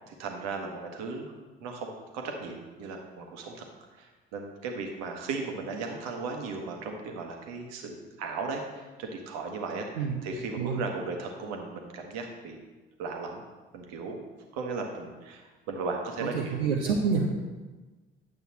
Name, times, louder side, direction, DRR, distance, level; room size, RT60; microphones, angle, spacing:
voice 1, 0.1-1.3 1.6-3.6 4.0-9.9 10.2-12.6 13.0-13.4 13.7-14.2 14.5-16.6, right 4 dB, 60° right, 2 dB, 1.3 m, -36 dB
voice 2, 16.2-17.3, right 5 dB, 80° right, -1 dB, 0.7 m, -27 dB
9.6 x 7.8 x 2.9 m, 1.3 s
figure-of-eight pair, 50°, 29 cm